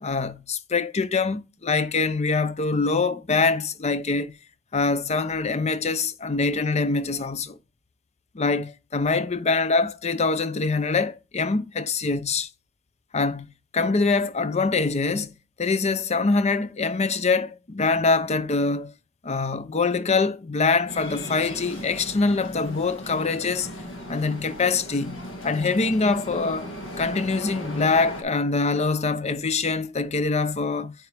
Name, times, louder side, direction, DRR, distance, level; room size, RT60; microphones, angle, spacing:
voice 1, 0.0-4.3 4.7-7.6 8.3-12.5 13.1-13.5 13.7-15.3 15.6-18.9 19.2-23.7 24.1-26.7 27.0-30.9, left 4 dB, 35° left, 0.6 m, -24 dB
sound 1, 20.9-28.2, equal, 70° left, 1.8 m, -37 dB
9.1 x 4.8 x 3.4 m
head